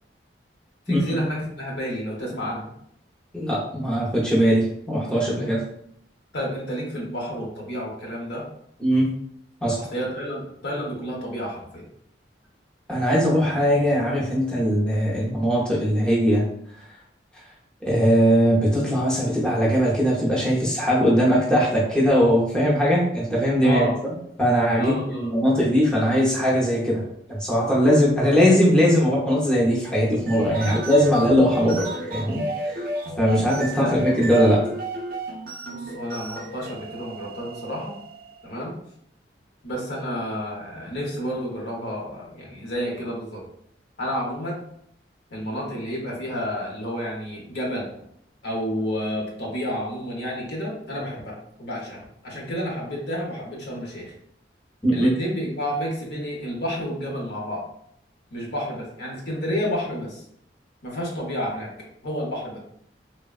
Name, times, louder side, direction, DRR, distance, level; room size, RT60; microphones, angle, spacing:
voice 1, 0.9-2.7 6.3-8.4 9.8-11.8 23.6-23.9 24.8-25.3 30.6-30.7 33.8-34.0 35.7-37.9 38.4-38.7 39.6-43.4 44.0-44.6 45.3-47.9 48.4-54.1 54.9-57.6 58.3-60.2 60.8-61.7 62.0-62.6, equal, 60° left, -2 dB, 0.8 m, -30 dB
voice 2, 3.3-5.6 8.8-9.1 9.6-9.8 12.9-16.5 17.9-27.0 27.3-32.4 32.7-32.8 33.2-34.6 54.8-55.1, equal, 5° left, -6 dB, 0.6 m, -20 dB
sound 1, 30.1-38.4, right 1 dB, 50° right, 0.3 m, -33 dB
3.3 x 2.1 x 2.3 m, 0.70 s
head